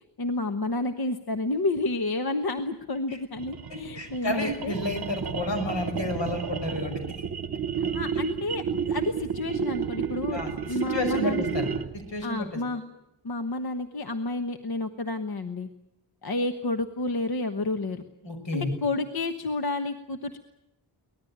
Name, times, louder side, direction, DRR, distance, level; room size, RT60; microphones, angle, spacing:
voice 1, 0.2-4.7 7.8-10.4 10.7-11.6 12.2-12.9 13.2-15.7 16.2-18.0 18.5-20.4, left 2 dB, 55° left, 8 dB, 1.3 m, -30 dB
sound 1, 3.4-12.1, right 7 dB, 55° right, 1.0 m, -31 dB
voice 2, 3.9-7.0 10.3-12.5 18.2-18.7, left 2 dB, 80° left, 6 dB, 6.0 m, -31 dB
24.0 x 19.5 x 8.8 m, 0.84 s
wide cardioid pair, 135°, 44 cm